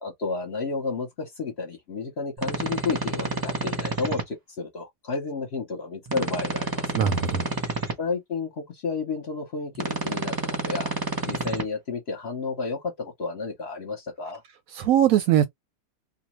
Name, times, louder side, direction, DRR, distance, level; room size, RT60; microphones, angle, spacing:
voice 1, 0.0-7.0 8.0-10.9 11.2-14.4, left 4 dB, 50° left, 0.9 m, -32 dB
sound 1, 2.4-4.2 6.1-7.9 9.7-11.6, right 2 dB, 30° right, 0.4 m, -29 dB
voice 2, 7.0-7.5 14.8-15.5, right 10 dB, 70° right, 0.9 m, -20 dB
2.6 x 2.1 x 2.9 m
omnidirectional pair, 1.7 m